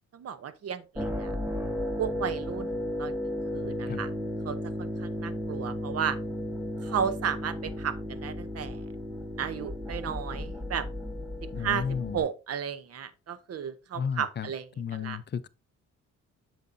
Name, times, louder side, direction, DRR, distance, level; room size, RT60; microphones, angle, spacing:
voice 1, 0.1-1.3 2.0-3.1 3.5-4.1 4.4-6.2 6.8-8.8 9.4-10.9 11.6-14.7 14.9-15.2, right 8 dB, 55° right, 0.9 m, -34 dB
sound 1, 1.0-12.2, left 1 dB, 5° right, 1.2 m, -34 dB
voice 2, 11.5-12.2 13.9-14.5 14.8-15.5, left 7 dB, 35° left, 0.5 m, -33 dB
8.2 x 6.4 x 2.6 m
cardioid pair, 90°, 30 cm